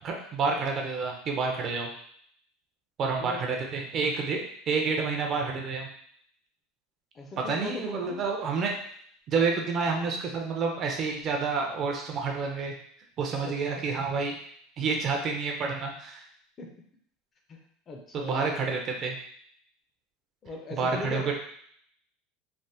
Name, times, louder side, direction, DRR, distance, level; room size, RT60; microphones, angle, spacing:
voice 1, 0.0-1.9 3.0-5.9 7.5-8.7 9.3-12.7 13.2-14.3 14.8-16.2 18.1-19.2 20.8-21.3, right 4 dB, 35° right, 1 dB, 0.5 m, -29 dB
voice 2, 3.2-3.6 7.1-8.2 13.5-13.6 16.6-16.7 17.5-18.7 20.4-21.3, left 3 dB, 25° left, 2 dB, 0.4 m, -39 dB
3.2 x 2.0 x 2.7 m, 0.63 s
supercardioid pair, 150°, 0 cm